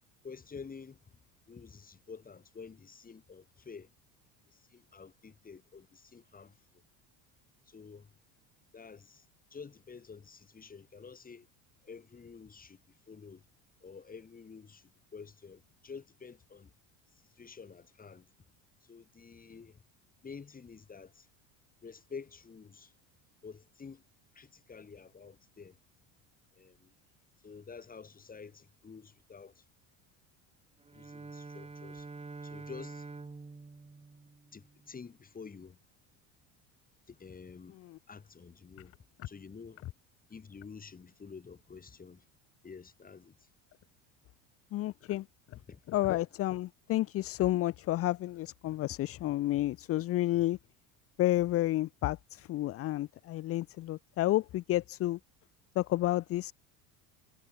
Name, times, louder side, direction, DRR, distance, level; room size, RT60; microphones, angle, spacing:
voice 1, 0.2-1.2 1.5-3.9 4.5-6.8 7.7-8.1 8.7-9.3 9.5-11.5 11.8-13.5 13.8-16.7 17.1-18.3 18.8-19.8 20.2-21.3 21.8-22.9 23.4-24.0 24.3-25.8 26.5-26.9 27.4-29.7 30.9-32.1 32.4-33.1 34.5-35.8 37.1-37.8 38.1-39.0 39.2-39.9 40.3-42.3 42.6-43.5 45.7-45.8, left 5 dB, 20° left, 2.4 m, -49 dB
Bowed string instrument, 30.8-35.0, right 3 dB, 15° right, 4.0 m, -47 dB
voice 2, 44.7-45.3 45.9-50.6 51.2-55.2 55.8-56.5, left 15 dB, 35° left, 0.5 m, -30 dB
supercardioid pair, 110°, 39 cm